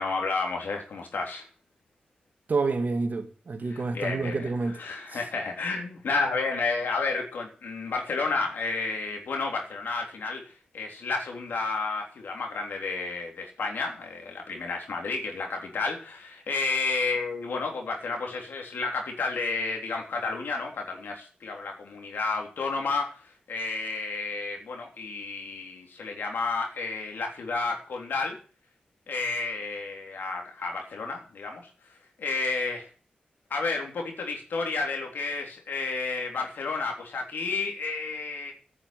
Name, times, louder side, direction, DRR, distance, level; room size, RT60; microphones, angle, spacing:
voice 1, 0.0-1.5 3.7-28.4 29.1-31.7 32.2-32.9 33.5-38.5, left 4 dB, 80° left, 3.6 m, -31 dB
voice 2, 2.5-4.8 5.1-5.2, right 3 dB, 60° right, 2.0 m, -28 dB
10.0 x 7.1 x 9.0 m
cardioid pair, 45°, 3 cm